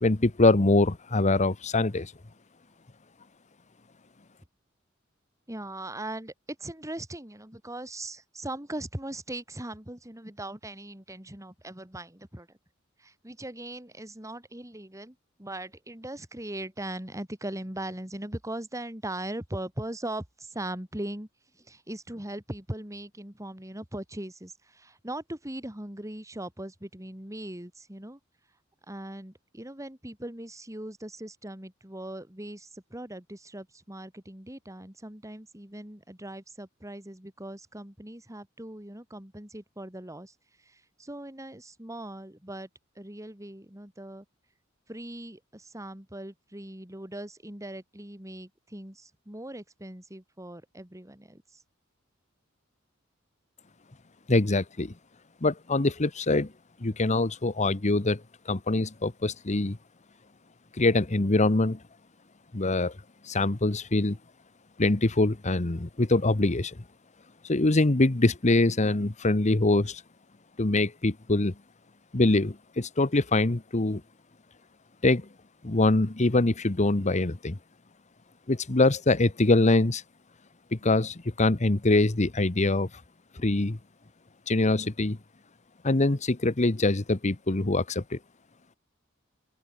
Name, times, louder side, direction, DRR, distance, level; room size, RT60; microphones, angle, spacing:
voice 1, 0.0-2.1 54.3-54.9 55.4-56.5 56.8-58.2 58.5-59.8 60.8-61.8 62.5-62.9 63.3-64.2 64.8-66.7 67.4-70.0 70.6-71.5 72.1-74.0 75.0-75.3 75.6-77.6 78.5-80.0 80.7-82.9 83.4-83.8 84.5-85.2 85.8-88.2, left 2 dB, 35° left, 1.0 m, -24 dB
voice 2, 5.5-6.3 6.6-12.6 13.0-21.3 21.6-28.2 28.9-40.3 40.6-42.7 42.9-44.2 44.9-51.6, right 1 dB, 15° right, 3.2 m, -40 dB
open air
head